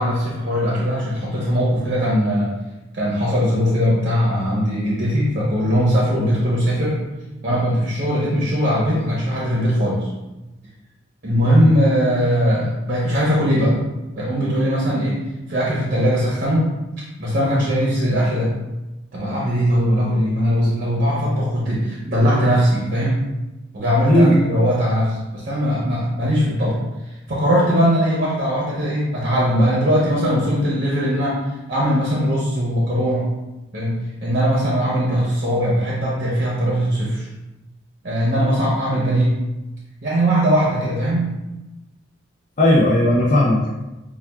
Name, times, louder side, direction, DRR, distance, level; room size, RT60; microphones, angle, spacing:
voice 1, 0.0-2.5 2.9-7.0 7.4-10.1 11.2-13.8 14.2-15.2 15.5-16.7 17.2-18.5 19.1-23.2 23.7-26.8 27.1-31.4 31.7-33.3 33.7-37.3 38.0-39.4 40.0-41.3, equal, 45° right, -6 dB, 0.8 m, -20 dB
voice 2, 24.1-24.5 42.6-43.7, left 1 dB, 40° left, -5 dB, 0.5 m, -15 dB
5.8 x 2.3 x 2.2 m, 1.0 s
head